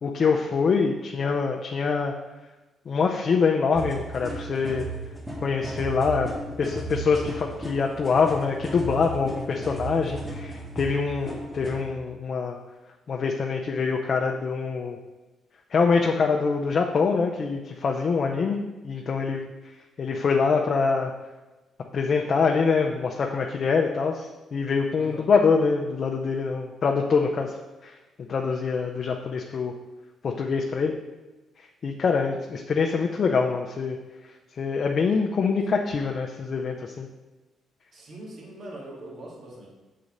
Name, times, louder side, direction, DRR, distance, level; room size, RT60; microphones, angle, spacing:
voice 1, 0.0-2.1 2.9-4.9 5.4-6.3 6.6-12.6 13.1-15.0 15.7-19.5 20.0-21.1 21.9-27.6 27.8-28.0 28.3-29.7 30.2-31.0 31.8-34.0 34.6-37.1, left 5 dB, 50° left, 2 dB, 0.5 m, -24 dB
sound 1, 3.8-11.8, right 2 dB, 10° right, 1.8 m, -35 dB
voice 2, 25.0-25.3 37.9-39.7, right 1 dB, 60° right, -2 dB, 2.0 m, -42 dB
6.6 x 4.1 x 5.1 m, 1.1 s
cardioid pair, 90°, 0 cm